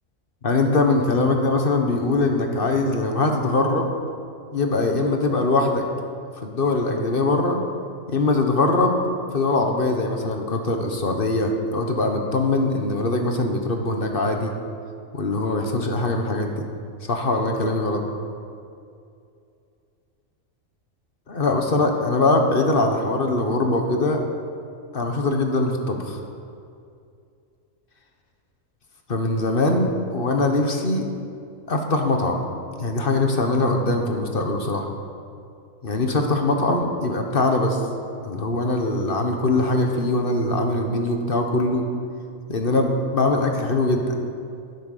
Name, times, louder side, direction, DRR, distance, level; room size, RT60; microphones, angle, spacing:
voice 1, 0.4-3.9 4.5-5.8 6.4-7.6 8.1-9.0 9.3-14.5 15.1-16.5 17.1-18.0 21.3-24.2 24.9-26.2 29.1-31.1 31.7-32.4 32.8-34.9 35.8-37.8 38.2-41.8 42.5-44.1, left 2 dB, 45° left, 3 dB, 1.4 m, -22 dB
11.0 x 10.0 x 6.7 m, 2.4 s
omnidirectional pair, 1.4 m